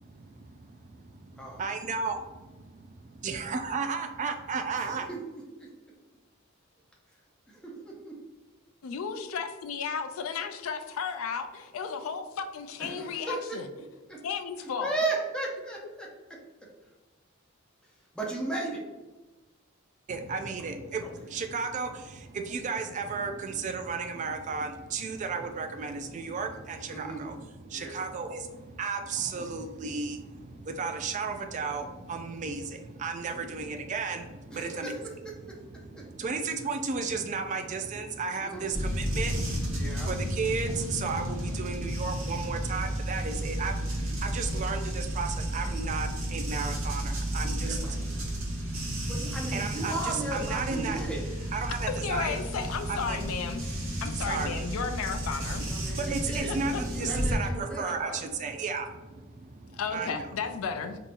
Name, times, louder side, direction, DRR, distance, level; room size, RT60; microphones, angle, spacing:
voice 1, 1.0-5.1 20.1-34.9 35.5-48.9 49.5-51.0 51.5-52.4 52.9-53.2 53.6-54.7 55.8-60.2, right 4 dB, 35° right, 6 dB, 0.3 m, -34 dB
voice 2, 4.8-5.2 5.6-5.7 7.5-8.2 12.8-13.6 14.1-14.2 14.8-16.1 18.1-18.8 21.0-21.1 26.9-27.3 27.7-28.0 33.3-33.6 34.5-35.0 35.2-35.6 36.0-36.1 38.4-38.7 39.7-40.1 41.4-41.7 47.6-48.1 49.1-51.2 55.7-58.2, right 2 dB, 5° left, -2 dB, 0.6 m, -36 dB
voice 3, 8.8-13.7 14.2-14.9 51.9-53.6 54.0-55.8 56.5-56.8 59.7-61.0, left 6 dB, 75° left, 8 dB, 0.4 m, -34 dB
sound 1, 38.7-57.4, equal, 70° right, 1.1 m, -32 dB
3.8 x 2.8 x 2.5 m, 1.2 s
head